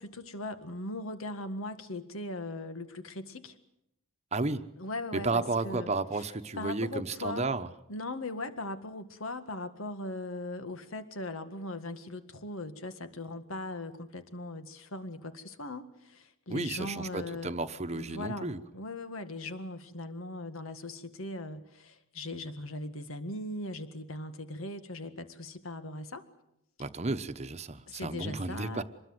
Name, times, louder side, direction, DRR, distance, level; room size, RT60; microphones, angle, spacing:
voice 1, 0.0-3.6 4.8-6.3 6.6-7.5 7.9-17.5 17.9-26.3 27.9-28.8, left 2 dB, 85° left, 10 dB, 1.8 m, -39 dB
voice 2, 4.3-4.6 5.1-7.7 16.5-18.6 26.8-28.8, right 3 dB, 30° right, 10 dB, 1.0 m, -32 dB
26.0 x 20.5 x 8.0 m, 0.81 s
head